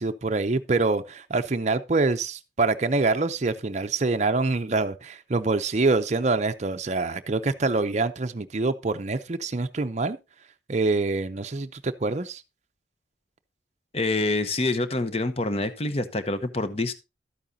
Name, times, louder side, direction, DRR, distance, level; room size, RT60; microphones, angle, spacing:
voice 1, 0.0-10.2 10.7-12.4, right 3 dB, 35° right, 0.6 m, -25 dB
voice 2, 13.9-16.9, left 2 dB, 30° left, 0.8 m, -26 dB
12.5 x 8.9 x 2.7 m
head